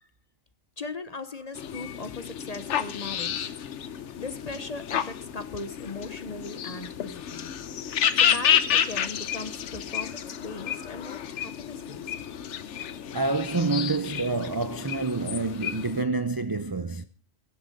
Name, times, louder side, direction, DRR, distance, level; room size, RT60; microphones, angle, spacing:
voice 1, 0.8-3.5 4.2-7.5 8.1-12.1, left 3 dB, 40° left, 0.8 m, -39 dB
sound 1, 1.5-16.0, left 9 dB, 70° left, 1.1 m, -30 dB
voice 2, 12.7-17.0, right 3 dB, 30° right, 0.4 m, -28 dB
22.0 x 7.5 x 5.2 m
omnidirectional pair, 1.3 m